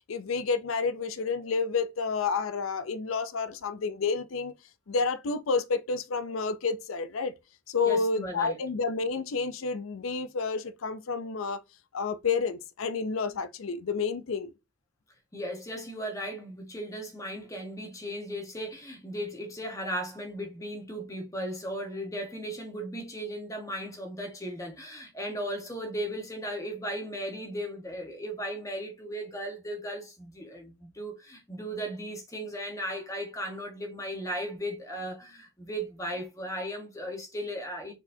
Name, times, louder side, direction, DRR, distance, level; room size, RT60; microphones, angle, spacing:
voice 1, 0.1-4.5 4.9-7.3 7.7-11.6 11.9-14.5, left 4 dB, 80° left, 0.5 m, -30 dB
voice 2, 7.8-8.6 15.3-37.9, equal, 15° left, 1.2 m, -36 dB
4.3 x 4.1 x 2.7 m
head